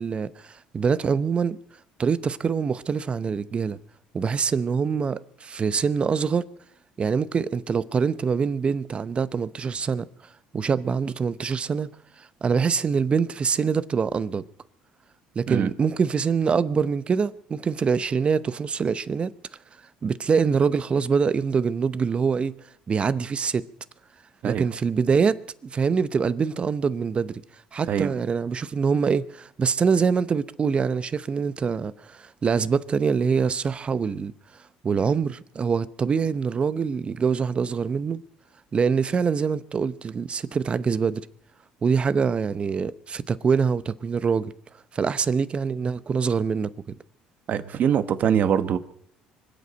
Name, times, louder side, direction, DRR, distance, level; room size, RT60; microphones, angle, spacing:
voice 1, 0.0-1.6 2.0-3.8 4.1-6.5 7.0-10.1 10.5-11.9 12.2-14.4 15.3-19.3 20.0-22.5 22.9-23.6 24.4-27.4 27.7-34.3 34.8-38.2 38.7-41.3 41.8-44.5 44.9-47.0, right 6 dB, 35° right, 0.8 m, -24 dB
voice 2, 47.5-48.8, right 8 dB, 55° right, 1.1 m, -23 dB
24.5 x 8.4 x 6.3 m
supercardioid pair, 75°, 3 cm